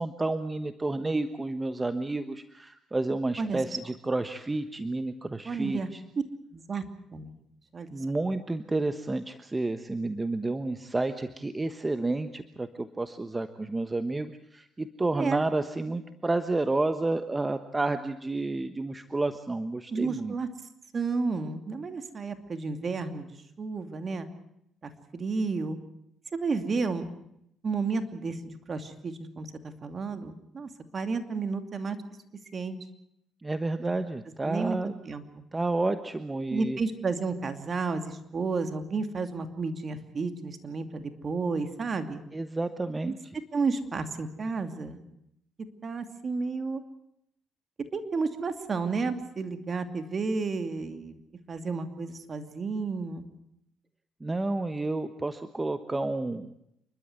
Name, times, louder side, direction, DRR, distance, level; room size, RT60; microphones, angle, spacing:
voice 1, 0.0-6.0 7.9-20.3 33.4-35.0 35.5-36.8 42.3-43.2 54.2-56.5, right 2 dB, 20° right, 10 dB, 1.2 m, -30 dB
voice 2, 5.5-5.9 6.5-6.8 7.1-7.4 7.7-7.9 15.1-15.4 19.9-20.5 20.9-24.3 24.8-25.8 26.3-27.1 27.6-32.0 32.5-32.8 34.4-34.8 35.0-35.2 36.5-42.2 43.1-43.2 43.5-45.0 45.8-46.8 47.9-51.2 51.5-53.2, right 4 dB, 40° right, 8 dB, 2.6 m, -32 dB
28.5 x 12.5 x 9.7 m, 0.77 s
supercardioid pair, 75°, 0 cm